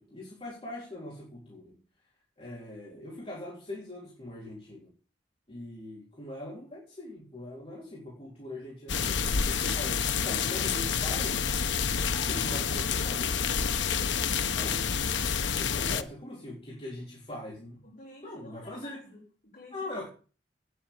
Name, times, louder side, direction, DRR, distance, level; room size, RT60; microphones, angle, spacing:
voice 1, 0.0-1.8 2.4-4.9 5.5-11.5 12.1-13.7 14.6-14.9 15.5-17.8 18.2-19.0 19.7-20.1, left 1 dB, 30° left, 3.7 m, -42 dB
sound 1, 8.9-16.0, left 6 dB, 80° left, 0.9 m, -28 dB
voice 2, 17.8-20.1, left 1 dB, 45° left, 6.2 m, -53 dB
9.5 x 8.2 x 8.7 m
head